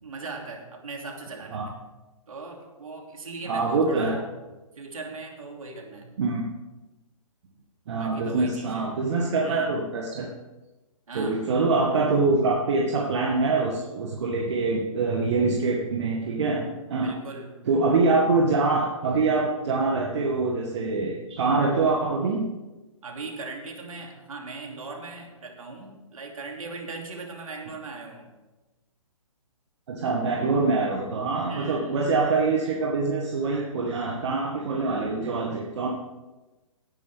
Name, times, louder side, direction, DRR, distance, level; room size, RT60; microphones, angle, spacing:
voice 1, 0.0-1.8 2.3-4.2 4.8-6.1 8.0-8.8 9.4-9.8 11.1-11.5 17.0-17.5 23.0-28.3 31.5-32.2, right 3 dB, 70° right, 2 dB, 3.0 m, -39 dB
voice 2, 3.4-4.2 6.2-6.4 7.9-10.3 11.1-17.1 17.7-22.5 29.9-35.9, right 3 dB, 50° right, 0 dB, 1.7 m, -24 dB
17.5 x 10.0 x 3.6 m, 1.1 s
figure-of-eight pair, 135°, 18 cm